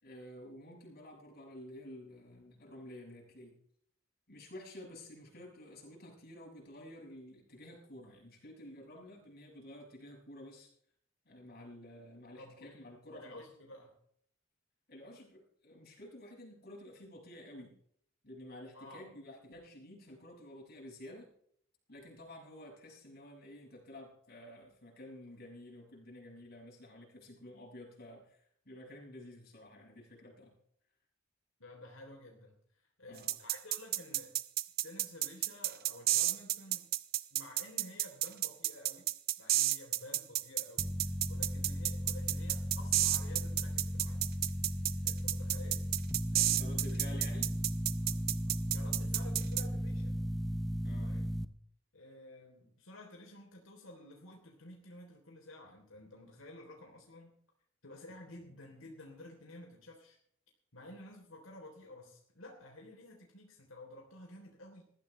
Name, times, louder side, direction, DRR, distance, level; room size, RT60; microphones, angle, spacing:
voice 1, 0.0-3.5 4.3-10.7 11.2-13.4 14.9-17.7 18.2-21.3 21.9-30.5 33.1-33.4 46.5-47.5 50.8-51.3 58.2-58.3, left 1 dB, 50° left, 0 dB, 6.4 m, -51 dB
voice 2, 12.4-14.0 18.7-19.0 31.6-34.3 34.8-36.9 37.3-39.1 39.4-44.2 45.0-45.8 46.3-47.2 48.1-50.2 51.0-51.3 51.9-57.4 57.8-60.2 60.7-64.9, left 1 dB, 85° left, 0 dB, 3.6 m, -52 dB
sound 1, 33.3-49.6, right 14 dB, 50° right, 0.6 m, -31 dB
sound 2, 40.8-51.4, equal, ahead, 0.8 m, -36 dB
20.0 x 14.5 x 3.3 m, 0.65 s
head